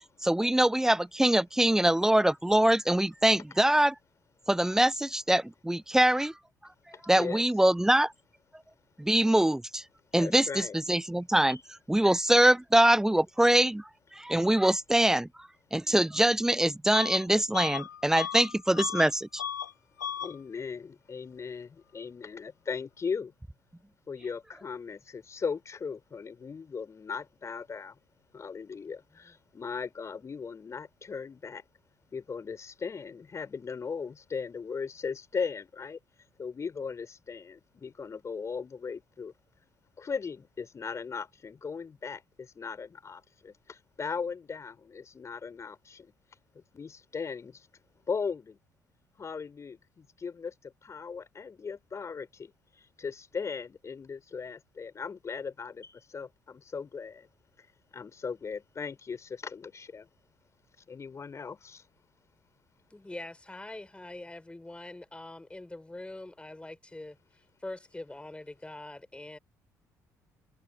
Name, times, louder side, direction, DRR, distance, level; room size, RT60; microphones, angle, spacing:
voice 1, 0.2-3.9 4.5-6.3 7.1-8.1 9.0-9.8 10.1-11.6 11.9-13.8 14.2-15.3 15.7-19.4, right 1 dB, 5° right, 0.4 m, -24 dB
voice 2, 6.9-7.4 10.1-10.8 11.5-11.6 20.2-23.3 24.1-28.0 28.3-31.6 32.1-36.0 36.4-39.3 40.0-46.1 46.5-47.7 48.1-48.6 49.2-57.3 57.6-57.7 57.9-60.1 60.9-61.8, left 5 dB, 35° left, 4.1 m, -38 dB
Bus / Alarm, 16.9-17.2 17.5-19.1 19.4-19.7 20.0-20.3, left 9 dB, 80° left, 0.8 m, -35 dB
voice 3, 62.9-67.2 67.6-69.4, left 2 dB, 10° left, 6.9 m, -43 dB
figure-of-eight pair, 50°, 9 cm